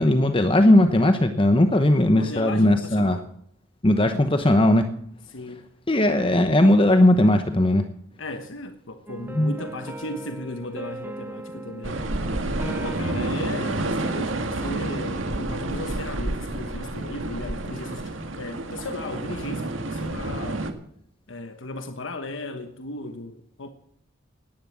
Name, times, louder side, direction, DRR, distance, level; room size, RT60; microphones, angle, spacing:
voice 1, 0.0-3.2 3.8-4.9 5.9-7.8 9.3-9.5, left 1 dB, 25° left, 0.9 m, -18 dB
voice 2, 2.1-3.3 5.3-5.7 8.2-12.0 12.6-20.7 21.3-23.7, left 2 dB, 75° left, 1.2 m, -36 dB
sound 1, 9.1-14.7, right 1 dB, 10° right, 0.8 m, -40 dB
sound 2, 11.8-20.7, right 2 dB, 80° right, 1.9 m, -29 dB
18.0 x 11.0 x 7.3 m
head